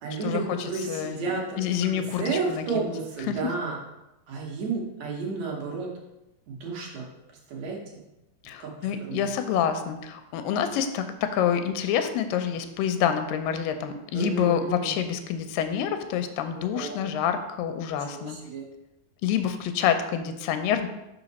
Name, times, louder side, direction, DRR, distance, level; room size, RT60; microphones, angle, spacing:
voice 1, 0.0-3.8 4.3-5.9 6.5-7.0 7.5-8.0 8.6-8.7 9.0-9.3 14.1-14.9 16.7-17.0 18.1-18.7, right 4 dB, 65° right, -1 dB, 2.1 m, -32 dB
voice 2, 0.9-1.3 1.6-2.9 3.3-3.4 8.4-18.4 19.2-20.9, left 8 dB, 85° left, 8 dB, 2.3 m, -27 dB
5.8 x 5.3 x 4.0 m, 0.94 s
omnidirectional pair, 3.9 m